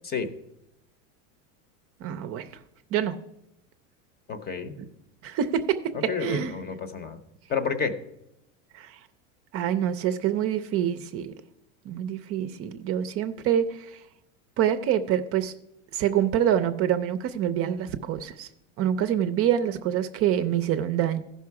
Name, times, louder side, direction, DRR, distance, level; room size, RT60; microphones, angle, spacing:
voice 1, 2.0-2.5 2.9-3.2 4.8-4.9 5.2-6.6 8.7-9.0 9.5-11.3 11.9-14.0 14.6-15.5 15.9-18.5 18.8-21.2, right 10 dB, 40° right, 10 dB, 0.5 m, -26 dB
voice 2, 4.3-4.7 5.9-7.2 7.5-7.9, left 6 dB, 25° left, 11 dB, 0.8 m, -30 dB
14.5 x 5.6 x 4.7 m, 0.85 s
supercardioid pair, 130°, 37 cm